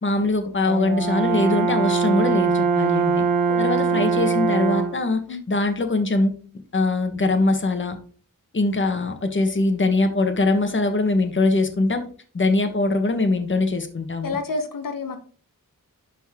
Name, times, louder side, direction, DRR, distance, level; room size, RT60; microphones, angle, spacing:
voice 1, 0.0-3.2 3.6-5.2 5.5-6.3 6.7-8.0 8.5-12.0 12.3-14.4, left 2 dB, 35° left, 6 dB, 1.2 m, -22 dB
Brass instrument, 0.7-5.1, right 5 dB, 85° right, 1.0 m, -22 dB
voice 2, 14.2-15.2, left 3 dB, 75° left, 5 dB, 1.2 m, -29 dB
12.0 x 4.1 x 3.6 m, 0.41 s
wide cardioid pair, 115°, 33 cm